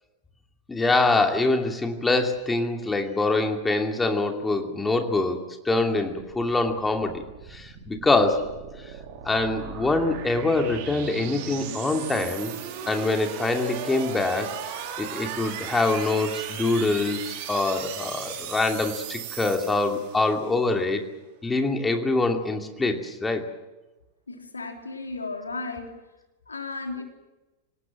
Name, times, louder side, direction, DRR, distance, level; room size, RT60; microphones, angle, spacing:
voice 1, 0.7-7.2 7.5-8.9 9.2-12.5 12.9-14.6 15.0-21.0 21.4-23.5, left 2 dB, 10° left, 4 dB, 2.6 m, -24 dB
sound 1, 6.1-20.5, right 8 dB, 50° right, 3.9 m, -37 dB
voice 2, 24.3-25.9 26.5-27.0, left 3 dB, 75° left, 4 dB, 3.3 m, -34 dB
27.5 x 18.0 x 7.6 m, 1.1 s
figure-of-eight pair, 90°, 0 cm